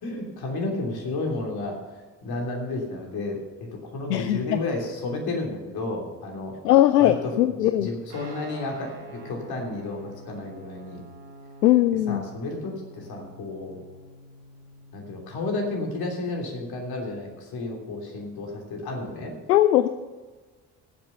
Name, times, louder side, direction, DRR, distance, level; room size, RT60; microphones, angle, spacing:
voice 1, 0.0-6.5 7.0-11.0 12.1-13.8 14.9-19.3, left 2 dB, 50° left, 1 dB, 3.2 m, -32 dB
voice 2, 4.1-4.6 6.6-7.9 11.6-12.2 19.5-19.9, left 13 dB, 75° left, 12 dB, 0.6 m, -19 dB
Guitar, 8.1-16.2, right 1 dB, 75° right, 2.0 m, -47 dB
17.0 x 7.7 x 5.5 m, 1.3 s
figure-of-eight pair, 50°, 49 cm